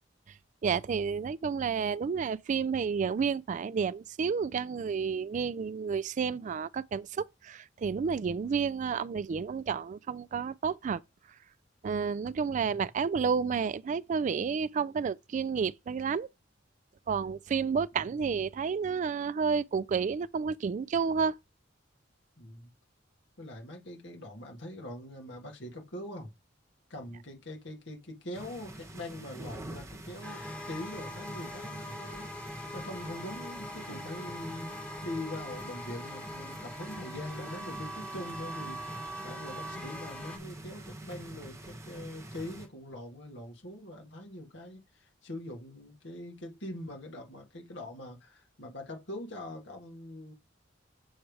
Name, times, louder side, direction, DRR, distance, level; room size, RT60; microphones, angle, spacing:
voice 1, 0.6-11.0 11.8-16.3 17.1-21.4, right 6 dB, 40° right, 0.3 m, -30 dB
voice 2, 12.5-12.8 22.4-22.7 23.4-26.3 26.9-50.3, left 1 dB, 65° left, 1.7 m, -43 dB
sound 1, 28.3-42.7, right 1 dB, 15° right, 1.3 m, -45 dB
sound 2, 30.2-40.4, equal, 5° left, 1.2 m, -42 dB
7.1 x 3.3 x 4.7 m
head